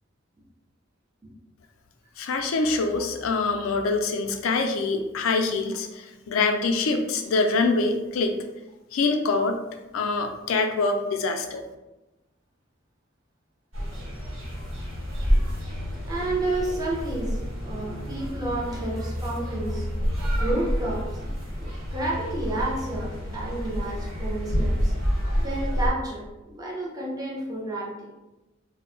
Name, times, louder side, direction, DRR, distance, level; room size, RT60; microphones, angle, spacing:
voice 1, 2.2-8.3 8.9-9.6 9.9-11.6, left 3 dB, 85° left, 5 dB, 0.4 m, -25 dB
sound 1, 13.7-25.9, equal, 85° right, 1.1 m, -28 dB
voice 2, 16.0-19.9 20.4-24.9 25.4-28.1, right 2 dB, 20° right, -4 dB, 0.5 m, -31 dB
2.2 x 2.0 x 3.6 m, 1.0 s
head